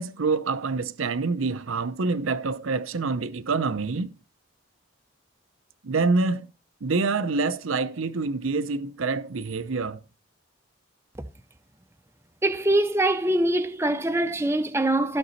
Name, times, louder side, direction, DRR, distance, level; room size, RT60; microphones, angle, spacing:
voice 1, 0.0-4.1 5.8-6.5 6.8-10.0, right 4 dB, 80° right, 0.7 m, -26 dB
voice 2, 12.4-15.2, right 1 dB, 10° right, 0.5 m, -23 dB
14.5 x 6.1 x 4.1 m
head